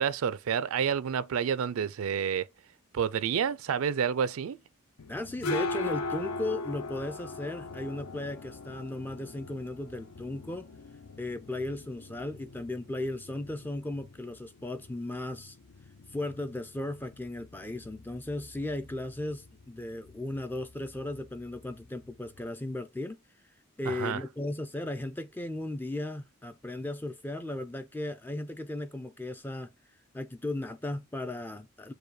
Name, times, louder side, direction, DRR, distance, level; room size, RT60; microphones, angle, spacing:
voice 1, 0.0-2.5 2.9-4.6 23.8-24.2, right 7 dB, 65° right, 0.4 m, -29 dB
sound 1, 5.0-22.5, left 2 dB, 70° left, 0.5 m, -41 dB
voice 2, 5.1-10.7 11.2-15.6 16.1-23.2 23.8-29.7 30.1-31.9, left 2 dB, 10° left, 0.3 m, -36 dB
4.8 x 2.2 x 4.7 m
head